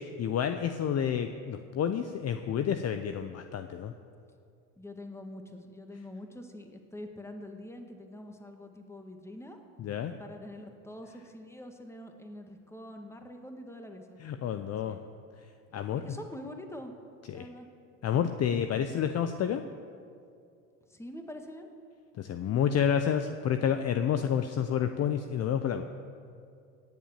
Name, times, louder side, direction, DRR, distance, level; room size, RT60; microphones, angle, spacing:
voice 1, 0.0-3.9 9.8-10.2 14.2-15.0 15.7-16.0 17.3-17.5 18.0-19.6 22.2-25.8, left 8 dB, 40° left, 8 dB, 0.7 m, -29 dB
voice 2, 4.8-9.6 10.2-14.2 14.8-15.0 16.0-16.9 17.3-17.7 20.9-21.7, left 1 dB, 5° left, 5 dB, 1.8 m, -45 dB
17.5 x 7.5 x 7.4 m, 2.4 s
hypercardioid pair, 75°, 41 cm